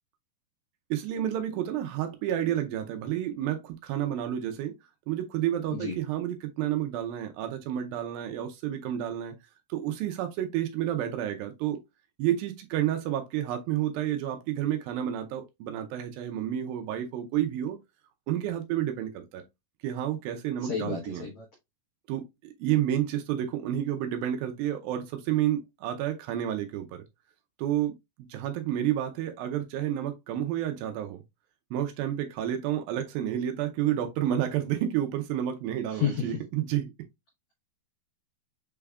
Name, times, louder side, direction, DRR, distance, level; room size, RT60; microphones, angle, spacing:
voice 1, 0.9-4.7 5.1-9.3 9.7-11.8 12.2-17.8 18.3-19.4 19.8-21.2 22.1-27.0 27.6-27.9 28.3-31.2 31.7-36.9, right 11 dB, 85° right, 2.1 m, -30 dB
voice 2, 20.6-21.5 35.9-36.4, left 8 dB, 85° left, 1.5 m, -31 dB
6.1 x 3.5 x 2.3 m
omnidirectional pair, 5.0 m